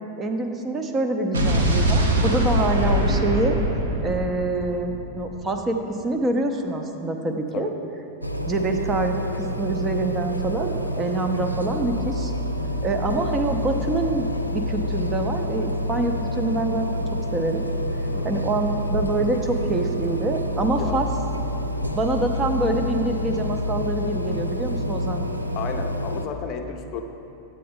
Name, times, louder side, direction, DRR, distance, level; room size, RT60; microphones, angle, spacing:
voice 1, 0.2-3.6 4.0-5.8 6.0-7.7 8.5-12.3 12.8-14.3 14.5-17.0 17.3-17.6 18.2-21.1 21.9-25.2, right 2 dB, 20° right, 4 dB, 0.6 m, -25 dB
Explosion, 1.3-5.4, equal, 70° right, 1.0 m, -22 dB
sound 1, 8.2-26.3, left 1 dB, 90° left, 0.4 m, -28 dB
voice 2, 18.1-18.5 20.8-21.0 25.5-27.0, left 6 dB, 35° left, 5 dB, 0.6 m, -33 dB
8.7 x 8.5 x 3.6 m, 2.9 s
figure-of-eight pair, 90°, 0 cm